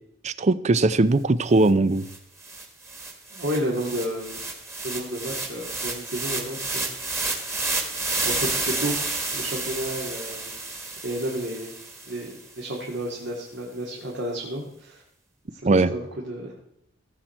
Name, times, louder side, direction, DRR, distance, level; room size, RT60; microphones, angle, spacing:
voice 1, 0.2-2.1 15.7-15.9, right 2 dB, 35° right, 16 dB, 0.5 m, -20 dB
sound 1, 1.7-1.8 2.0-12.4, right 3 dB, 15° right, 1.6 m, -31 dB
voice 2, 3.3-4.4 4.8-7.0 8.2-10.5 11.0-11.7 12.1-15.0 15.5-16.5, right 1 dB, 70° right, -3 dB, 2.3 m, -31 dB
17.0 x 7.5 x 4.4 m, 0.76 s
head